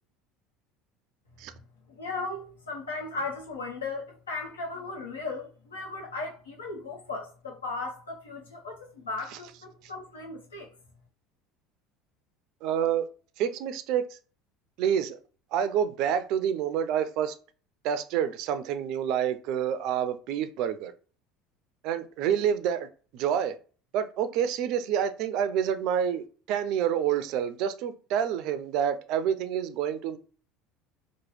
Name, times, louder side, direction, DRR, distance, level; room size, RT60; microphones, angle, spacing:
voice 1, 1.9-10.7, left 3 dB, 85° left, 0.8 m, -36 dB
voice 2, 12.6-13.1 13.4-14.0 14.8-15.2 15.5-17.3 17.8-20.9 21.8-22.9 23.1-23.5 23.9-30.2, right 9 dB, 60° right, 0.3 m, -28 dB
3.0 x 2.1 x 3.1 m
hypercardioid pair, 70°, 0 cm